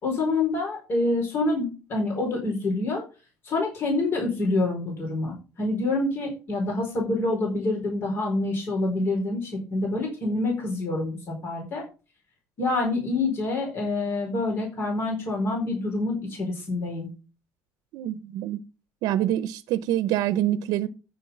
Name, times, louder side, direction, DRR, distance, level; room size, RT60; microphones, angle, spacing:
voice 1, 0.0-3.0 3.4-11.8 12.6-17.1, left 2 dB, 40° left, 4.5 m, -27 dB
voice 2, 17.9-18.6 19.0-20.9, right 12 dB, 85° right, 0.7 m, -26 dB
9.1 x 7.2 x 5.6 m
cardioid pair, 165°, 6 cm